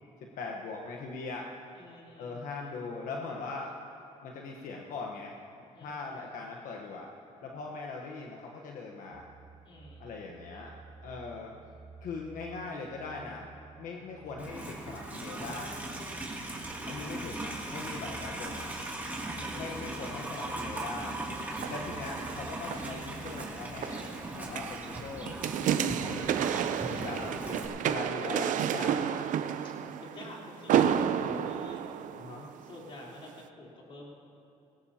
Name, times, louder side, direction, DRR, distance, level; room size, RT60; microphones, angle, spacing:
voice 1, 0.2-1.5 2.2-3.7 4.2-5.3 5.8-7.1 7.4-9.3 10.0-10.7 11.0-11.5 12.0-13.5 13.8-15.7 16.8-18.7 19.5-21.1 21.7-24.1 24.3-25.4 25.8-26.5 26.9-29.3 32.1-32.5, left 4 dB, 80° left, 0 dB, 1.1 m, -40 dB
voice 2, 1.7-2.7 5.7-6.1 9.6-10.3 10.6-10.7 16.8-17.3 17.7-18.1 19.4-19.9 27.0-27.3 28.2-29.0 29.6-31.9 32.6-34.1, left 2 dB, 45° left, -3 dB, 3.7 m, -49 dB
sound 1, 9.1-23.5, right 4 dB, 35° right, 0.8 m, -51 dB
Livestock farm animals working animals, 14.4-27.7, right 1 dB, 15° right, 2.5 m, -39 dB
sound 2, 21.5-32.8 33.3-33.4, right 9 dB, 75° right, 0.6 m, -31 dB
20.0 x 17.5 x 2.9 m, 2.8 s
cardioid pair, 110°, 13 cm